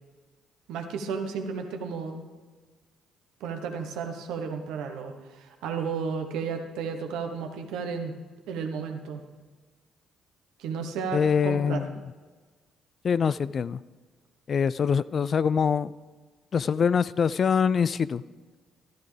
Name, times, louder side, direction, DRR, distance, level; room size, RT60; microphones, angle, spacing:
voice 1, 0.7-2.2 3.4-8.2 8.5-9.2 10.6-11.8, right 5 dB, 70° right, 5 dB, 1.2 m, -33 dB
voice 2, 11.1-12.0 13.0-13.8 14.5-15.9 16.5-18.2, left 6 dB, 50° left, 18 dB, 0.3 m, -24 dB
13.0 x 12.5 x 3.4 m, 1.4 s
hypercardioid pair, 50°, 0 cm